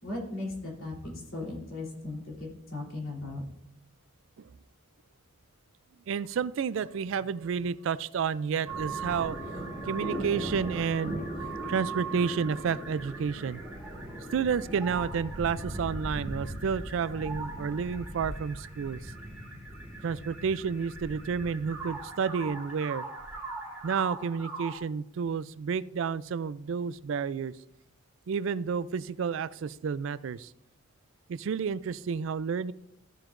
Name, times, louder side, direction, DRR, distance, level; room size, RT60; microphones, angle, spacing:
voice 1, 0.0-3.4, left 2 dB, 70° left, -2 dB, 3.4 m, -37 dB
voice 2, 6.1-9.4 9.9-11.4 11.7-13.6 14.3-19.1 20.0-23.0 23.8-27.5 28.3-30.5 31.3-32.7, right 6 dB, 65° right, 17 dB, 0.3 m, -30 dB
sound 1, 8.7-24.8, right 2 dB, 10° right, 2.0 m, -38 dB
14.5 x 7.5 x 2.5 m, 0.78 s
head